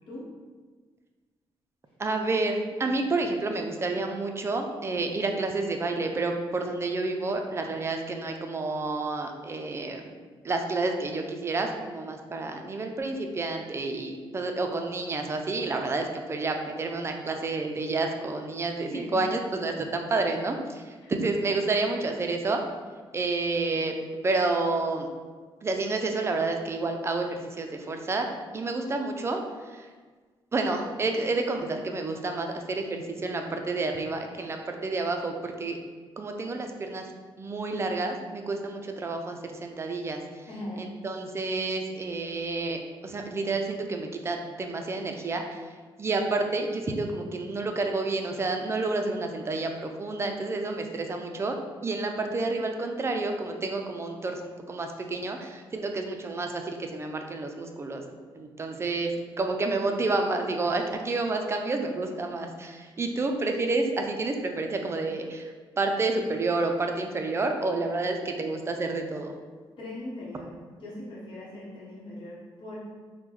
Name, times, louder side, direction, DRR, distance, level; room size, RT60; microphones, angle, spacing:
voice 1, 2.0-10.1 10.4-22.6 23.1-23.9 24.2-25.1 25.6-28.3 28.5-29.4 29.7-29.9 30.5-35.8 36.2-37.0 37.4-40.2 40.8-45.6 46.0-51.6 51.8-59.1 59.4-65.5 65.8-69.3, right 3 dB, 30° right, 4 dB, 0.3 m, -29 dB
voice 2, 18.9-19.2 21.0-21.1 40.5-40.9 69.8-72.8, left 1 dB, 65° left, -6 dB, 1.0 m, -40 dB
3.5 x 2.1 x 3.0 m, 1.4 s
cardioid pair, 100°, 9 cm